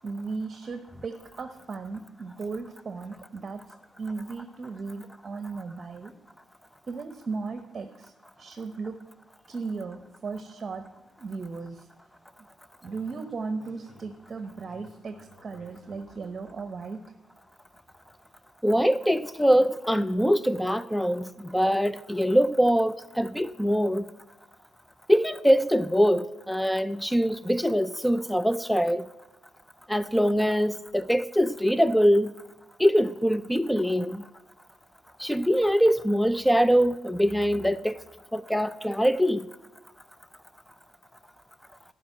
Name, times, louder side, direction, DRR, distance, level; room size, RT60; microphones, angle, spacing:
voice 1, 0.0-3.6 4.0-6.1 6.9-9.0 9.5-10.9 11.2-11.9 12.8-17.0, right 4 dB, 40° right, 0.9 m, -36 dB
Speech, 12.8-16.2, left 2 dB, 35° left, 4.5 m, -55 dB
voice 2, 18.6-24.0 25.1-29.1 29.9-32.3 32.8-34.2 35.2-38.0 38.3-39.4, equal, ahead, 0.4 m, -23 dB
12.0 x 6.1 x 9.2 m
cardioid pair, 90°, 0 cm